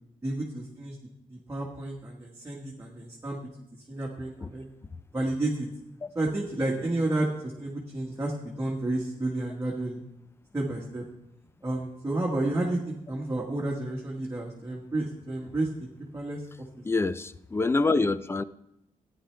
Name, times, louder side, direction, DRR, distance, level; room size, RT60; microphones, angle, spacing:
voice 1, 0.2-1.0 1.3-3.4 3.9-4.7 5.1-5.7 6.1-10.0 10.5-11.0 11.6-15.9 16.1-16.4, right 2 dB, 15° right, -3 dB, 1.5 m, -31 dB
voice 2, 16.8-18.4, left 3 dB, 15° left, 15 dB, 0.4 m, -26 dB
15.0 x 9.6 x 3.3 m, 0.82 s
wide cardioid pair, 155°, 14 cm